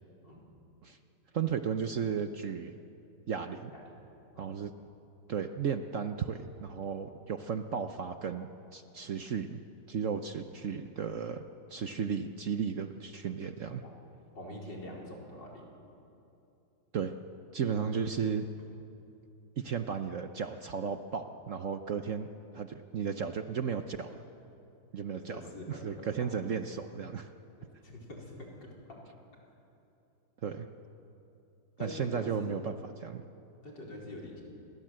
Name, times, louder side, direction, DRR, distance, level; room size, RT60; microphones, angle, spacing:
voice 1, 1.3-2.7 3.3-3.7 4.4-4.7 5.3-9.6 9.9-11.4 11.7-13.8 16.9-17.1 17.5-18.5 19.6-22.3 22.5-24.2 24.9-25.4 25.7-27.3 30.4-30.7 31.8-33.2, right 6 dB, 55° right, 8 dB, 1.0 m, -34 dB
voice 2, 14.4-15.7 25.1-26.3 27.8-29.0 31.8-32.5 33.6-34.4, left 1 dB, 75° left, -2 dB, 5.0 m, -44 dB
28.0 x 22.5 x 7.7 m, 2.8 s
omnidirectional pair, 2.0 m